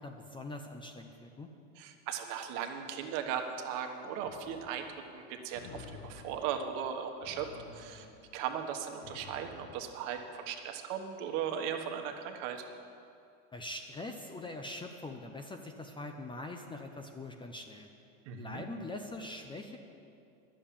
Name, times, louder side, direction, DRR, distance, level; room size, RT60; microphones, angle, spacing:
voice 1, 0.0-1.5 13.5-17.9 18.4-19.8, left 2 dB, 15° left, 5 dB, 0.6 m, -43 dB
voice 2, 1.8-7.5 7.7-8.1 8.3-12.6 18.2-18.6, right 8 dB, 55° right, 5 dB, 1.3 m, -37 dB
sound 1, 4.2-10.7, left 6 dB, 65° left, 1.1 m, -53 dB
11.0 x 7.6 x 8.6 m, 2.6 s
supercardioid pair, 130°, 38 cm